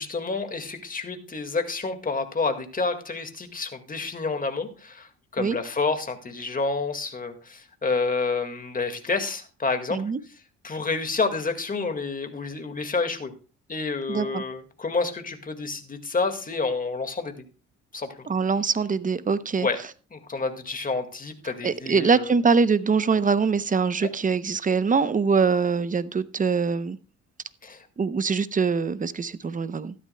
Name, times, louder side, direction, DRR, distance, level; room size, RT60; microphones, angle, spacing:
voice 1, 0.0-10.0 10.6-13.3 13.7-17.4 17.9-18.3 19.6-19.8 20.1-22.3 24.0-24.1 27.6-27.9, left 4 dB, 30° left, 7 dB, 1.8 m, -29 dB
voice 2, 14.1-14.4 18.3-19.7 21.6-27.0 28.0-29.9, right 5 dB, 25° right, 15 dB, 0.7 m, -23 dB
13.5 x 12.0 x 2.2 m, 0.36 s
cardioid pair, 90°, 30 cm